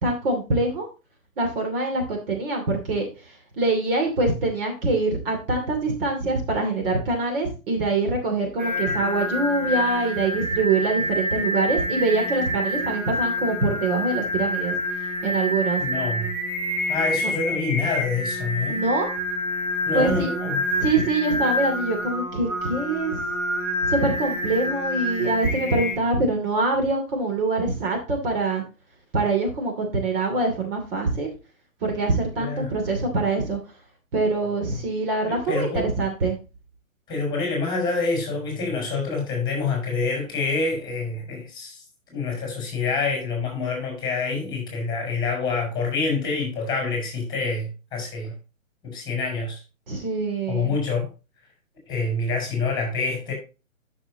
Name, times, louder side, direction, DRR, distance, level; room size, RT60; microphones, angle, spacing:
voice 1, 0.0-0.9 1.4-14.8 15.2-15.8 18.7-19.1 19.9-20.3 20.8-23.2 23.9-28.6 29.1-31.3 31.8-33.6 34.1-36.4 49.9-50.7, right 3 dB, 40° right, 2.7 m, -24 dB
Singing, 8.6-26.0, left 1 dB, 15° right, 2.8 m, -27 dB
voice 2, 15.8-16.3 16.9-18.8 19.9-20.6 32.3-32.7 35.3-35.9 37.1-41.8 42.1-48.3 48.8-49.6 50.5-51.1 51.9-53.3, left 4 dB, 10° left, 4.5 m, -27 dB
12.5 x 6.2 x 2.8 m
figure-of-eight pair, 140°, 41 cm